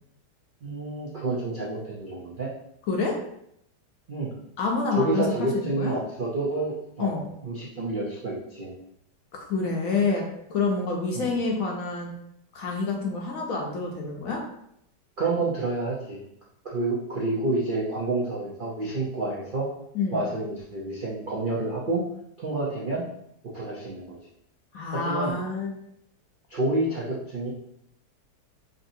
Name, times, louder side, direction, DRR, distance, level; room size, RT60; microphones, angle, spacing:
voice 1, 0.6-2.5 4.1-4.3 5.0-8.7 11.1-11.3 15.2-16.2 16.6-19.7 20.1-22.0 22.4-23.0 23.5-24.2 24.9-25.3 26.5-27.5, right 2 dB, 60° right, -5 dB, 0.5 m, -29 dB
voice 2, 4.6-5.9 7.0-7.2 9.3-10.2 10.5-12.1 12.5-14.4 19.9-20.3 24.7-25.7, left 4 dB, 65° left, 0 dB, 1.0 m, -27 dB
5.1 x 2.6 x 2.7 m, 0.74 s
omnidirectional pair, 1.8 m